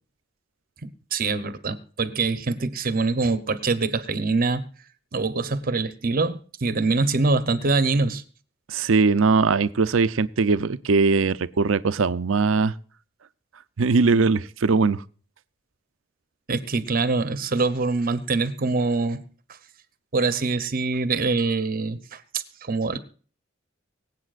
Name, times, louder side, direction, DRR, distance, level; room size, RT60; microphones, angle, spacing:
voice 1, 0.8-4.6 5.1-8.2 16.5-19.2 20.1-23.0, right 3 dB, 45° right, 0.8 m, -24 dB
voice 2, 8.7-12.7 13.8-15.0, right 4 dB, 85° right, 0.6 m, -20 dB
25.0 x 8.3 x 2.5 m
head